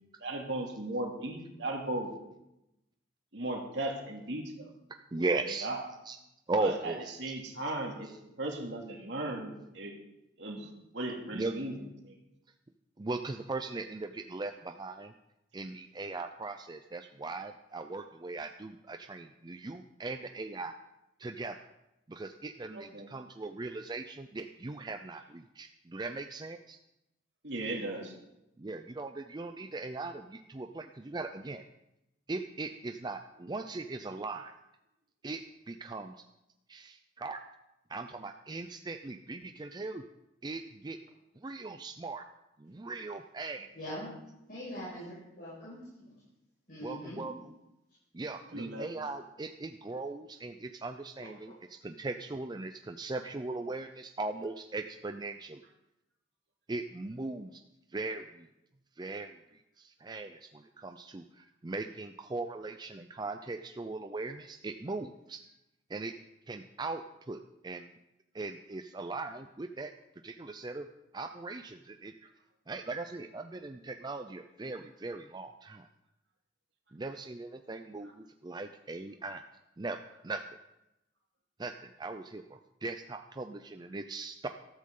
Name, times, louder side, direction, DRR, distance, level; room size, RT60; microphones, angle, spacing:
voice 1, 0.2-2.1 3.3-4.7 5.2-5.8 6.6-6.9 7.2-8.1 8.4-9.9 10.4-10.7 10.9-11.8 12.0-12.2 22.7-23.1 27.4-28.1 48.5-49.1, right 1 dB, 70° right, 0 dB, 2.6 m, -37 dB
voice 2, 5.1-5.7 6.1-6.2 6.5-7.1 11.3-11.5 13.0-15.1 15.5-20.7 21.2-21.6 22.1-26.8 28.6-31.6 32.3-34.5 35.2-35.4 35.7-36.2 36.7-37.4 37.9-40.1 40.4-41.0 41.4-42.3 42.6-43.7 46.8-47.6 48.1-55.6 56.7-57.6 57.9-58.5 59.0-65.4 65.9-66.1 66.5-67.9 68.3-69.9 70.2-70.9 71.1-72.3 72.7-75.9 76.9-79.4 79.8-80.0 80.2-80.4 81.6-84.5, right 3 dB, 25° right, 7 dB, 0.5 m, -39 dB
voice 3, 43.7-44.1 44.5-45.8 46.7-47.2, equal, 50° left, -8 dB, 5.8 m, -42 dB
14.0 x 13.0 x 3.8 m, 0.89 s
head